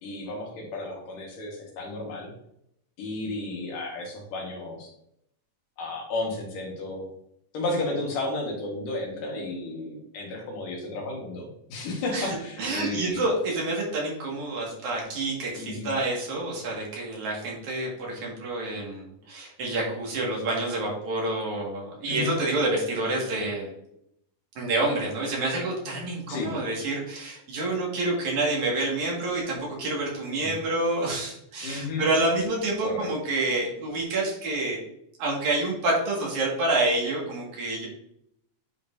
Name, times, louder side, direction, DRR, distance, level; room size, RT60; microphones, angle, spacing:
voice 1, 0.0-2.3 3.0-4.9 5.8-7.1 7.5-13.3 15.6-15.9 22.1-22.4 26.3-26.6 31.6-32.1 32.8-33.1, left 2 dB, 85° left, 0 dB, 3.4 m, -33 dB
voice 2, 12.6-23.7 24.6-34.8 35.2-37.9, right 2 dB, 65° right, -3 dB, 3.4 m, -28 dB
9.5 x 5.4 x 2.8 m, 0.75 s
omnidirectional pair, 3.7 m